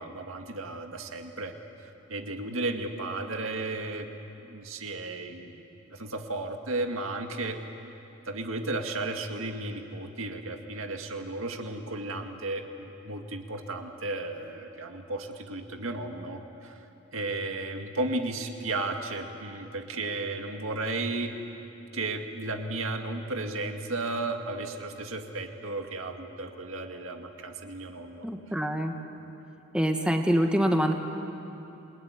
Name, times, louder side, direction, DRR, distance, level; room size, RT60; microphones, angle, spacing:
voice 1, 0.0-1.5 1.8-4.1 4.4-5.6 5.9-7.6 8.3-16.8 17.1-21.3 21.9-28.3, right 2 dB, 80° right, 4 dB, 2.0 m, -34 dB
voice 2, 28.2-28.9 29.7-30.9, equal, 5° right, 3 dB, 1.4 m, -25 dB
28.0 x 20.0 x 9.5 m, 3.0 s
head